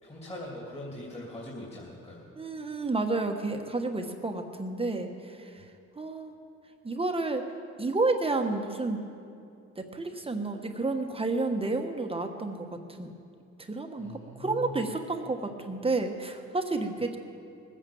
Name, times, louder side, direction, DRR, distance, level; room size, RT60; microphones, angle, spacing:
voice 1, 0.0-2.3 14.0-14.8, left 1 dB, 20° left, -4 dB, 3.0 m, -41 dB
voice 2, 2.4-5.6 6.0-6.3 6.8-7.5 7.8-9.0 9.8-13.1 13.6-14.1 14.4-17.2, right 3 dB, 20° right, 4 dB, 1.3 m, -30 dB
19.5 x 9.0 x 7.2 m, 2.5 s
cardioid pair, 90°, 30 cm